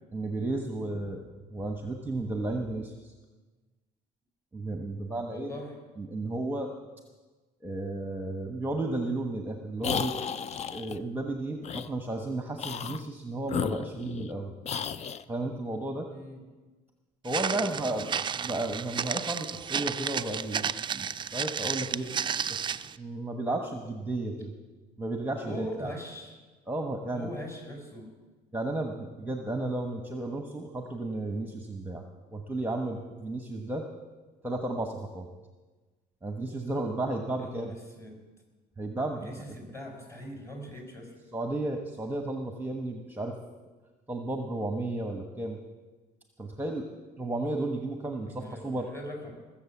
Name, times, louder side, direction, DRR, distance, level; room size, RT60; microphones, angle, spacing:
voice 1, 0.1-3.1 4.5-5.5 6.0-6.7 7.6-10.1 10.7-14.5 15.3-16.1 17.2-22.1 22.5-24.5 25.0-25.9 26.7-27.3 28.5-32.0 32.3-33.9 34.4-35.3 36.2-37.7 38.8-39.5 41.3-43.4 44.1-45.6 46.4-46.8 47.2-48.9, right 2 dB, 10° right, 4 dB, 1.2 m, -33 dB
voice 2, 5.3-5.8 16.1-16.4 17.4-18.2 25.4-26.4 27.1-28.1 37.4-38.2 39.1-41.1 48.3-49.3, left 1 dB, 15° left, 0 dB, 5.1 m, -41 dB
sound 1, 9.8-11.0 11.6-11.9 12.6-13.0 13.5-14.3 14.6-15.2, left 7 dB, 40° left, 0.5 m, -33 dB
Walk footsteps, 17.3-22.9, right 7 dB, 30° right, 0.4 m, -32 dB
21.0 x 7.4 x 7.2 m, 1.3 s
cardioid pair, 110°, 17 cm